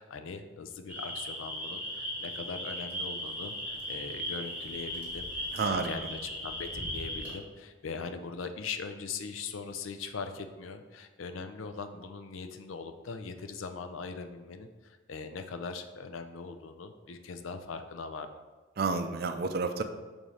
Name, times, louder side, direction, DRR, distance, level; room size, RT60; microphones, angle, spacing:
voice 1, 0.0-18.3, left 5 dB, 75° left, 8 dB, 0.5 m, -41 dB
sound 1, 0.9-7.3, equal, 10° right, 1.4 m, -37 dB
voice 2, 5.5-5.9 18.8-19.8, right 4 dB, 50° right, 7 dB, 0.4 m, -30 dB
7.1 x 2.7 x 4.9 m, 1.4 s
head